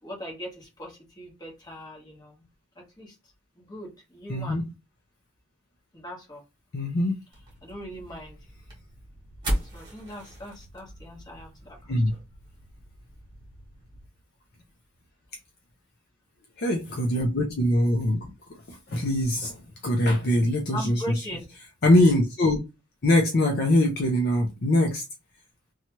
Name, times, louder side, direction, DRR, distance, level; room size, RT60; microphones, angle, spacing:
voice 1, 0.0-2.5 2.7-3.2 3.5-4.6 5.9-6.4 7.6-8.4 9.7-12.0 20.7-21.5, equal, 20° left, 1.1 m, -40 dB
voice 2, 4.3-4.6 6.7-7.2 11.9-12.1 16.6-18.2 18.7-21.0 21.8-22.6 23.0-25.0, left 1 dB, 50° left, 0.5 m, -22 dB
sound 1, 7.3-14.1, equal, 20° right, 1.3 m, -37 dB
2.8 x 2.3 x 2.9 m
head